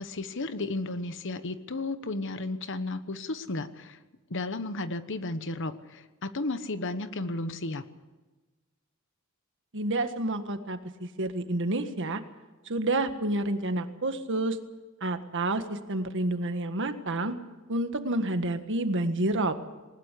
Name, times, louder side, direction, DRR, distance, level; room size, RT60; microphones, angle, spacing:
voice 1, 0.0-4.0 4.3-7.8, left 2 dB, 60° left, 12 dB, 1.2 m, -33 dB
voice 2, 9.7-12.2 12.6-14.6 15.0-17.3 17.7-19.6, right 2 dB, 60° right, 8 dB, 1.7 m, -29 dB
20.0 x 19.5 x 8.4 m, 1.2 s
head